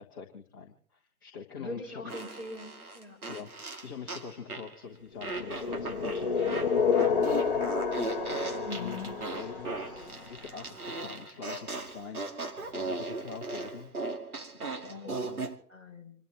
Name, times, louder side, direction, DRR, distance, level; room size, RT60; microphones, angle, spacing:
voice 1, 0.0-2.2 3.3-7.9 8.5-13.9 14.4-15.5, left 6 dB, 15° left, -4 dB, 1.4 m, -45 dB
voice 2, 1.6-3.2 8.6-9.1 14.9-15.2 15.7-16.1, left 3 dB, 15° right, -3 dB, 6.4 m, -41 dB
Fart, 2.1-4.8 5.2-15.6, right 3 dB, 80° right, 2.6 m, -38 dB
sound 1, 5.3-10.3, left 6 dB, 35° left, 1.1 m, -30 dB
28.0 x 13.0 x 3.0 m, 0.63 s
figure-of-eight pair, 160°, 44 cm